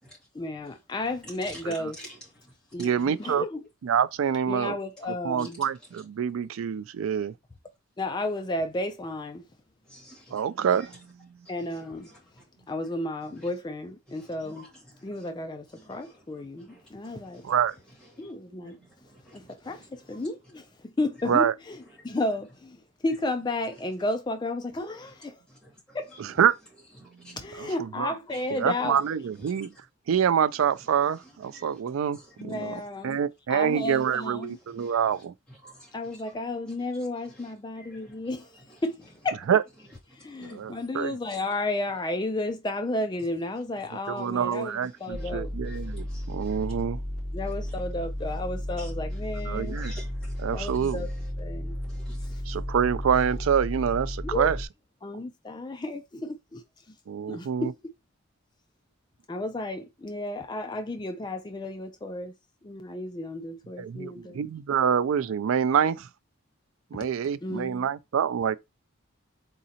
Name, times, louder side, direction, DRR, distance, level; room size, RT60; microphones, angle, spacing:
voice 1, 0.3-2.0 2.7-3.7 4.2-5.6 8.0-9.5 11.5-14.7 15.0-17.6 18.2-18.8 19.3-25.4 25.9-26.5 27.3-29.3 32.4-33.2 33.5-34.6 35.9-45.5 47.3-49.8 50.5-51.1 51.4-51.8 52.2-52.4 54.2-54.5 55.0-57.0 57.3-57.8 59.3-62.3 62.6-64.4 67.0-67.1 67.4-67.9, left 2 dB, 20° left, 0.4 m, -33 dB
voice 2, 2.8-3.4 3.8-4.7 5.2-7.3 10.3-11.0 17.4-17.7 21.3-21.5 26.4-26.5 27.6-27.7 28.0-28.1 28.5-29.7 30.1-32.7 33.0-35.3 39.5-39.6 40.4-41.1 44.1-47.0 49.5-49.9 50.4-51.0 52.5-54.6 57.1-57.7 63.8-66.1 66.9-68.6, right 8 dB, 80° right, 0.3 m, -26 dB
voice 3, 9.9-10.9 13.4-13.5 14.2-14.7 15.0-15.3 15.8-16.2 16.6-17.6 18.1-18.3 18.7-18.8 19.0-19.7 20.1-20.2 22.0-22.1 25.5-26.0 27.0-27.3 29.4-29.7 31.2-31.8 32.1-32.4 34.6-35.2 35.5-35.9 37.8-38.1 40.5-40.7 44.8-45.3 45.7-46.6 48.8-48.9 49.5-50.9 51.7-52.4, equal, 5° left, 2.2 m, -51 dB
sound 1, 45.1-54.7, equal, 15° right, 2.2 m, -34 dB
4.0 x 3.8 x 2.8 m
head